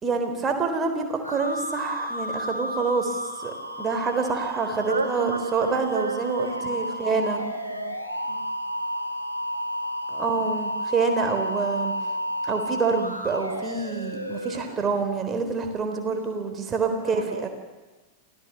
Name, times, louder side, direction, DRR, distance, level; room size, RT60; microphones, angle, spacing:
voice 1, 0.0-7.4 10.1-11.9 12.4-17.5, right 4 dB, 20° right, 5 dB, 4.0 m, -27 dB
sound 1, 1.2-15.0, equal, 90° right, 2.8 m, -32 dB
voice 2, 4.9-8.0 8.3-8.5 15.7-16.2 16.9-17.5, right 4 dB, 70° right, 5 dB, 1.6 m, -33 dB
27.0 x 17.5 x 7.5 m, 1.2 s
figure-of-eight pair, 90°, 0 cm